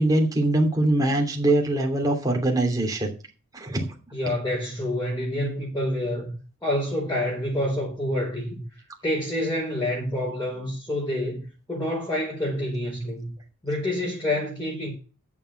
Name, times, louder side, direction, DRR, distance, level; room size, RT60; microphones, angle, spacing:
voice 1, 0.0-3.1 3.5-3.9, right 1 dB, 15° right, 3.0 m, -22 dB
voice 2, 4.1-6.3 6.6-8.6 9.0-13.3 13.6-14.9, left 1 dB, 15° left, 5.2 m, -27 dB
10.5 x 7.3 x 6.7 m
head